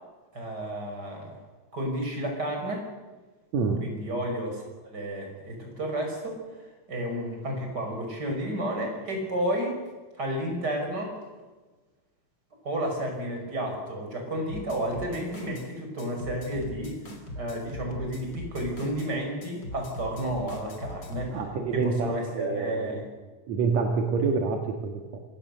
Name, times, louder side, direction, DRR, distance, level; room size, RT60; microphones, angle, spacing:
voice 1, 0.3-1.4 1.7-2.8 3.8-6.4 6.9-9.8 10.2-11.2 12.6-17.0 17.4-21.4 21.7-23.1, right 1 dB, 30° right, 2 dB, 6.4 m, -31 dB
voice 2, 3.5-3.9 21.3-23.0 23.5-25.2, right 4 dB, 65° right, 3 dB, 2.9 m, -27 dB
sound 1, 14.5-15.7 16.0-19.1 19.4-21.3, left 1 dB, 35° left, 3.7 m, -40 dB
26.5 x 16.5 x 6.8 m, 1.3 s
omnidirectional pair, 3.4 m